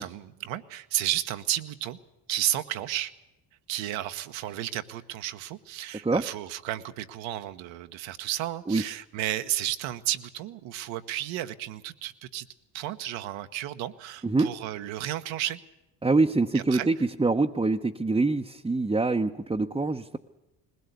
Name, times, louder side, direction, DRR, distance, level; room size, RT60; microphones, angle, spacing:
voice 1, 0.0-2.0 2.3-3.1 3.7-12.5 12.7-15.6 16.7-16.9, right 13 dB, 70° right, 10 dB, 1.2 m, -32 dB
voice 2, 16.0-20.2, right 3 dB, 10° right, 2 dB, 0.8 m, -25 dB
20.5 x 17.0 x 8.2 m, 0.98 s
hypercardioid pair, 65°, 47 cm